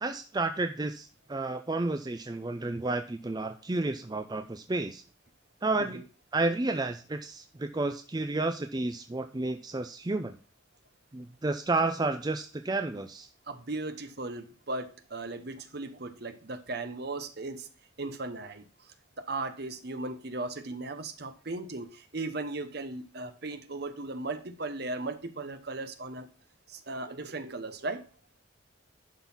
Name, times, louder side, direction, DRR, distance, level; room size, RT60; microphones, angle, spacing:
voice 1, 0.0-5.0 5.6-6.0 6.3-10.4 11.1-13.3, right 2 dB, 20° right, 7 dB, 0.4 m, -31 dB
voice 2, 13.5-17.7 18.0-18.6 19.2-26.3 26.7-28.0, right 2 dB, 50° right, 9 dB, 0.9 m, -37 dB
11.5 x 4.0 x 5.6 m, 0.38 s
head